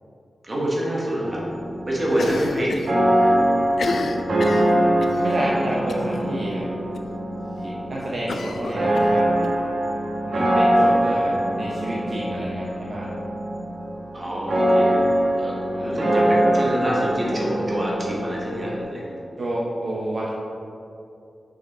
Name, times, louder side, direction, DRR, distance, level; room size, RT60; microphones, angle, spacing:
voice 1, 0.4-1.5 1.8-2.7 3.1-3.4 14.1-15.1 15.3-19.2, equal, 25° right, -4 dB, 1.3 m, -26 dB
sound 1, 1.2-18.8, right 1 dB, 70° right, 1.5 m, -23 dB
Cough, 2.1-2.9 3.2-3.3 3.7-5.2 5.9-6.2 6.5-6.6 6.9-7.0 8.3-9.5, left 4 dB, 80° left, 0.4 m, -31 dB
voice 2, 5.1-6.7 7.6-9.3 10.3-13.1 15.7-15.9 19.4-20.3, right 1 dB, 50° right, -4 dB, 0.8 m, -29 dB
6.5 x 5.6 x 4.2 m, 2.6 s
wide cardioid pair, 180°, 0 cm